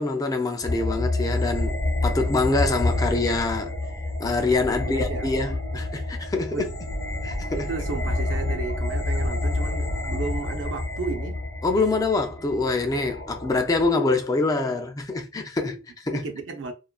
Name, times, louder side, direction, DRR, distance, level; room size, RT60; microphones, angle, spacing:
voice 1, 0.0-3.7 4.2-6.7 7.2-7.7 11.6-16.2, left 3 dB, 20° left, 0.3 m, -25 dB
sound 1, 0.6-13.9, left 2 dB, 60° left, 0.7 m, -28 dB
voice 2, 4.6-5.3 6.5-6.7 7.6-11.4 16.1-16.7, right 4 dB, 85° right, 0.5 m, -33 dB
2.4 x 2.2 x 2.3 m
head